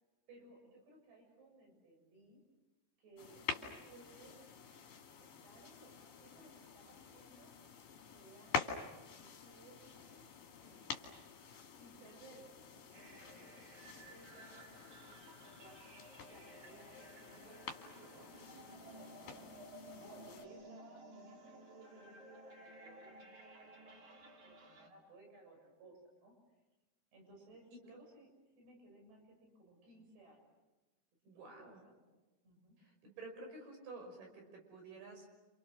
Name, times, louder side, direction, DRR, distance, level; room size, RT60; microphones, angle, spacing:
voice 1, 0.3-2.4 3.0-4.4 5.2-7.5 7.9-11.0 11.8-13.6 13.9-16.0 16.3-19.5 19.9-26.4 27.1-30.5 31.6-32.0 32.4-32.8, right 2 dB, 85° right, 1 dB, 9.2 m, -61 dB
sound 1, 3.2-20.5, left 5 dB, 55° left, 3.9 m, -47 dB
sound 2, 12.9-24.9, right 1 dB, 50° right, 3.8 m, -56 dB
voice 2, 31.3-31.8 32.8-35.3, right 3 dB, 65° right, 3 dB, 7.5 m, -51 dB
30.0 x 29.5 x 6.5 m, 1.1 s
omnidirectional pair, 4.7 m